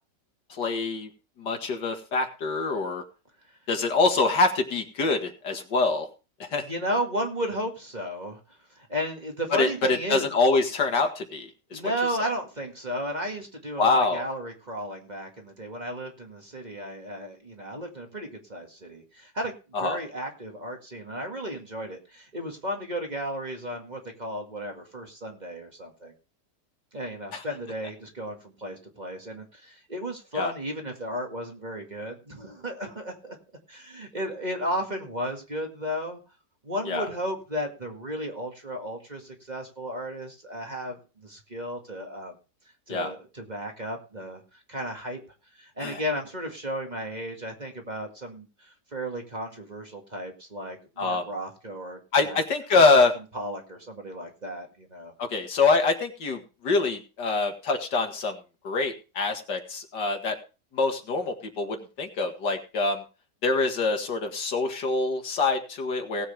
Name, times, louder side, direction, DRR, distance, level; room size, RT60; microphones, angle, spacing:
voice 1, 0.6-1.1 1.4-3.0 3.7-6.1 6.5-6.6 9.5-11.9 13.8-14.2 19.7-20.0 27.3-27.4 30.3-30.5 36.9-37.1 42.9-43.1 45.8-46.0 51.0-51.2 52.1-53.1 55.2-58.4 58.6-60.4 60.7-63.0 63.4-66.3, left 3 dB, 85° left, 5 dB, 2.5 m, -25 dB
voice 2, 6.7-10.3 11.7-26.1 26.9-33.4 33.7-36.2 36.6-42.3 42.9-44.4 44.7-45.2 45.5-52.4 52.7-53.0 53.3-55.1, equal, 25° right, 2 dB, 2.0 m, -34 dB
18.5 x 7.9 x 3.4 m, 0.32 s
omnidirectional pair, 1.8 m